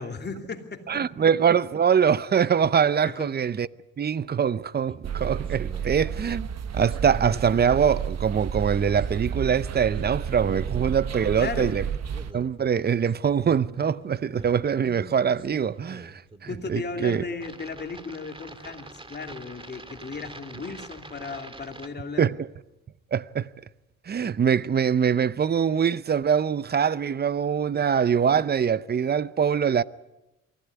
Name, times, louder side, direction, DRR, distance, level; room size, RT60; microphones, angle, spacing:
voice 1, 0.0-1.0 3.0-3.3 11.4-11.8 16.5-22.3, left 4 dB, 35° left, 2.8 m, -35 dB
voice 2, 0.9-3.7 4.0-6.5 6.7-11.8 12.3-16.2 16.7-17.2 22.2-22.5 23.1-23.5 24.1-29.8, right 7 dB, 35° right, 0.7 m, -23 dB
sound 1, 4.9-21.9, right 2 dB, 15° right, 1.9 m, -44 dB
sound 2, 5.0-12.3, right 8 dB, 60° right, 1.3 m, -31 dB
24.0 x 15.5 x 9.5 m
cardioid pair, 90°, 30 cm